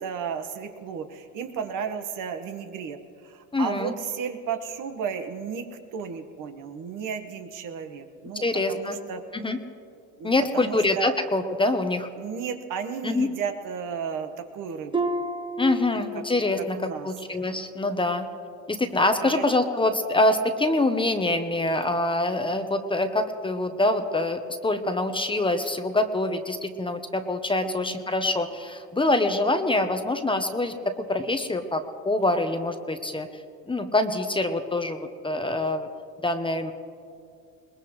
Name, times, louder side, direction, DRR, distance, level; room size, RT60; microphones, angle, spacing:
voice 1, 0.0-5.7 5.9-9.2 10.2-11.1 12.2-15.1 16.6-17.1 19.2-19.4 27.6-28.0, right 6 dB, 60° right, 6 dB, 1.4 m, -34 dB
voice 2, 3.5-3.9 8.4-9.0 9.3-9.6 10.2-12.1 13.0-13.3 15.6-18.3 18.7-33.3 33.7-35.9 36.2-36.7, left 2 dB, 15° left, 7 dB, 0.9 m, -25 dB
Harp, 14.9-16.7 17.1-17.5 18.0-18.1, right 1 dB, 15° right, 1.3 m, -31 dB
21.5 x 20.5 x 3.2 m, 2.4 s
supercardioid pair, 100°, 35 cm